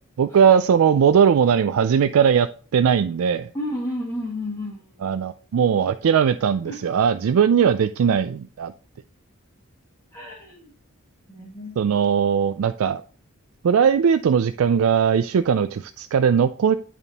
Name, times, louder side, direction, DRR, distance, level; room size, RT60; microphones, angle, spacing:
voice 1, 0.2-3.5 5.0-8.7 11.8-13.0 13.6-16.8, right 7 dB, 70° right, 11 dB, 0.3 m, -19 dB
voice 2, 3.5-5.0 6.6-6.8 10.1-10.6 11.3-11.8, left 1 dB, 10° left, -5 dB, 1.7 m, -31 dB
10.5 x 3.6 x 4.0 m, 0.40 s
head